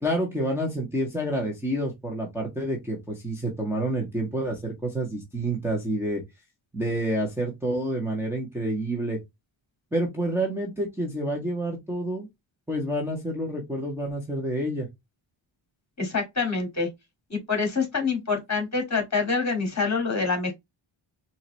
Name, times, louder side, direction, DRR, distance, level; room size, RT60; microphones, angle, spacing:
voice 1, 0.0-6.2 6.7-9.2 9.9-12.3 12.7-14.9, right 1 dB, 5° right, 1.3 m, -28 dB
voice 2, 16.0-16.9 17.3-20.5, left 4 dB, 30° left, 2.3 m, -26 dB
4.6 x 2.9 x 3.3 m
wide cardioid pair, 110°, 50 cm